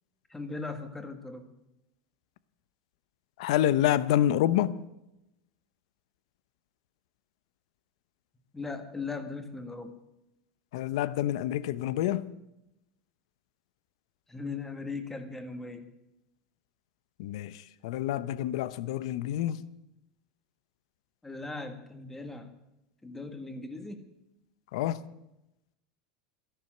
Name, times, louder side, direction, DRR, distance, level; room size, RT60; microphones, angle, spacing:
voice 1, 0.3-1.5 8.5-10.0 14.3-15.9 21.2-22.5 23.0-24.1, left 3 dB, 10° left, 1.8 m, -38 dB
voice 2, 3.4-4.8 10.7-12.3 17.2-19.6 24.7-25.0, left 12 dB, 70° left, 0.7 m, -27 dB
12.5 x 11.0 x 7.6 m
supercardioid pair, 115°, 3 cm